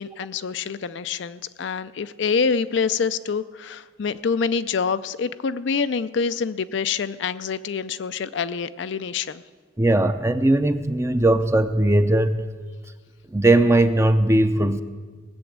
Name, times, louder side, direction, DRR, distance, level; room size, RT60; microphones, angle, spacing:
voice 1, 0.0-9.4, left 5 dB, 65° left, 13 dB, 0.4 m, -26 dB
voice 2, 9.8-12.4 13.3-14.8, right 1 dB, 15° right, 9 dB, 0.6 m, -19 dB
18.5 x 7.0 x 8.6 m, 1.4 s
head